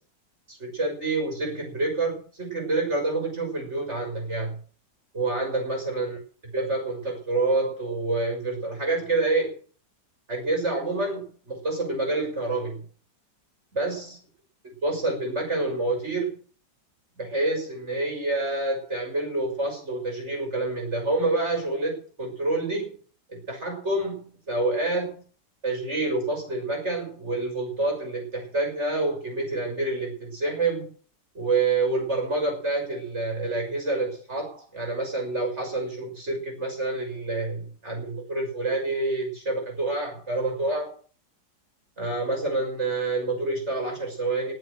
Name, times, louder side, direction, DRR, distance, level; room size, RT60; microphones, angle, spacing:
voice 1, 0.6-4.6 5.1-6.2 6.5-9.6 10.3-12.8 13.7-14.2 14.8-16.4 17.2-23.0 23.3-25.2 25.6-30.9 31.3-41.0 42.0-44.5, right 2 dB, 35° right, 2 dB, 6.4 m, -27 dB
19.5 x 8.0 x 6.8 m, 0.41 s
omnidirectional pair, 1.9 m